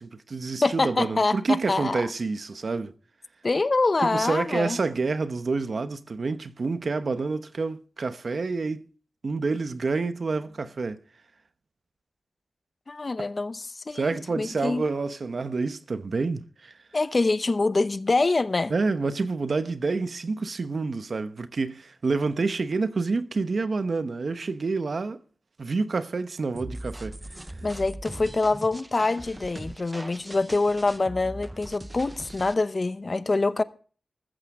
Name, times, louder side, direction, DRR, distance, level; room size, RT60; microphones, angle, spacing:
voice 1, 0.0-2.9 4.0-8.8 9.2-11.0 13.9-16.7 18.7-25.2 25.6-27.2, right 4 dB, 65° right, 0.9 m, -28 dB
voice 2, 0.6-2.1 3.4-4.8 12.9-14.8 16.9-18.7 27.6-33.6, left 3 dB, 45° left, 0.8 m, -25 dB
sound 1, 26.5-32.5, right 1 dB, 20° right, 0.7 m, -40 dB
14.0 x 14.0 x 3.6 m
wide cardioid pair, 65°, 0 cm